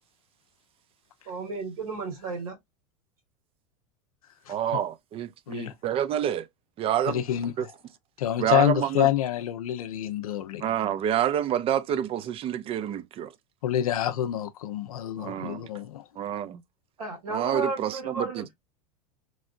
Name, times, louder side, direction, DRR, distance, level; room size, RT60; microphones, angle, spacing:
voice 1, 1.2-2.6 15.2-15.5 17.0-18.6, right 4 dB, 85° right, 1.8 m, -34 dB
voice 2, 4.5-6.5 6.8-7.2 7.6-7.7 8.4-9.1 10.6-13.3 15.2-15.7 16.2-16.6 17.3-18.4, right 10 dB, 30° right, 0.4 m, -28 dB
voice 3, 7.1-7.5 8.2-10.6 13.6-16.0, left 12 dB, 85° left, 0.5 m, -27 dB
3.1 x 2.6 x 2.5 m
hypercardioid pair, 100°, 18 cm